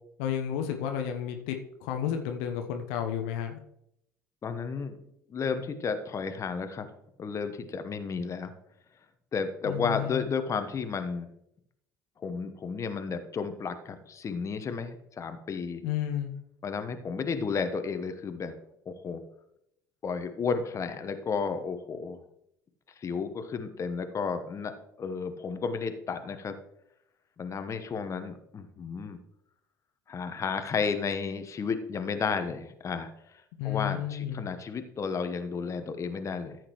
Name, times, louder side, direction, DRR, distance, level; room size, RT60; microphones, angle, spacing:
voice 1, 0.2-3.6 9.6-10.2 15.8-16.3 33.6-34.5, left 9 dB, 65° left, 4 dB, 0.9 m, -32 dB
voice 2, 4.4-5.0 5.3-6.9 7.2-8.5 9.3-11.3 12.2-15.8 16.6-18.5 18.9-19.2 20.0-22.2 23.0-24.7 25.0-26.5 27.4-29.2 30.1-33.1 33.6-36.6, left 5 dB, 35° left, 8 dB, 1.1 m, -32 dB
13.5 x 7.8 x 3.1 m, 0.77 s
figure-of-eight pair, 65°, 9 cm